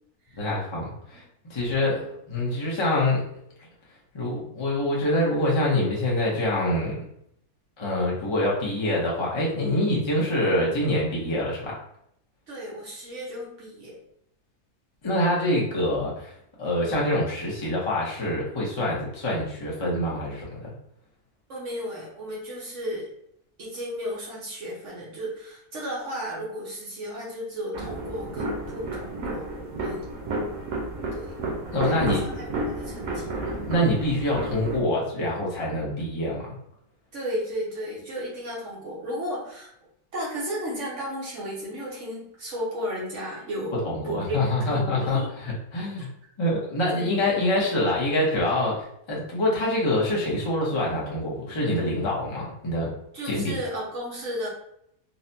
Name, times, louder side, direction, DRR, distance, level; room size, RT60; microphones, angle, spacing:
voice 1, 0.4-1.2 1.5-2.0 2.3-3.2 4.1-7.1 7.8-11.7 15.0-16.3 16.6-20.7 31.7-32.2 33.4-36.6 43.8-46.1 46.4-52.9 53.2-53.5, left 1 dB, 30° left, -5 dB, 0.5 m, -25 dB
voice 2, 12.5-14.0 21.5-23.1 23.6-29.5 29.8-30.1 31.1-31.3 31.8-33.4 37.1-39.7 40.1-45.3 46.9-47.2 53.1-54.5, equal, 60° right, -4 dB, 1.1 m, -34 dB
sound 1, 27.7-34.8, right 2 dB, 80° right, 1.2 m, -31 dB
4.0 x 2.1 x 2.7 m, 0.72 s
omnidirectional pair, 1.5 m